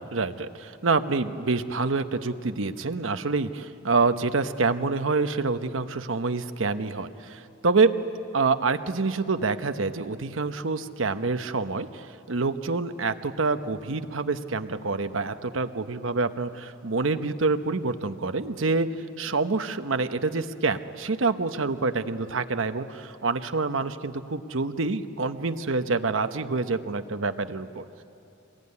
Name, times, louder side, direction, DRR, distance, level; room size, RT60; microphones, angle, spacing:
voice 1, 0.1-7.9 8.3-28.0, right 3 dB, 75° right, 9 dB, 1.0 m, -27 dB
25.0 x 21.0 x 9.7 m, 2.6 s
head